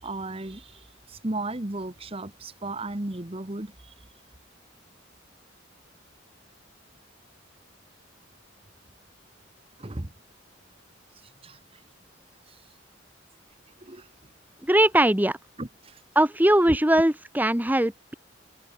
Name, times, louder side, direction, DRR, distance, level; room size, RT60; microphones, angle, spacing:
voice 1, 0.0-4.1 9.8-10.1 11.2-11.8 12.5-12.6 13.8-14.1 15.6-16.0 16.7-16.8, right 2 dB, 30° right, 1.2 m, -35 dB
voice 2, 14.6-15.4 16.1-18.1, right 1 dB, 10° right, 1.1 m, -21 dB
open air
head